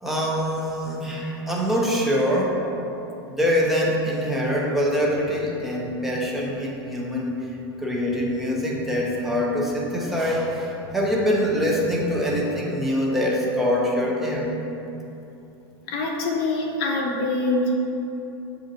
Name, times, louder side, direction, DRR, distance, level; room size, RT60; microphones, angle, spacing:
voice 1, 0.0-2.6 3.3-7.5 7.8-14.5 15.9-16.0, equal, ahead, -4 dB, 0.6 m, -24 dB
voice 2, 15.9-17.8, left 2 dB, 50° left, -1 dB, 0.7 m, -24 dB
7.2 x 2.5 x 2.6 m, 2.9 s
supercardioid pair, 140°, 13 cm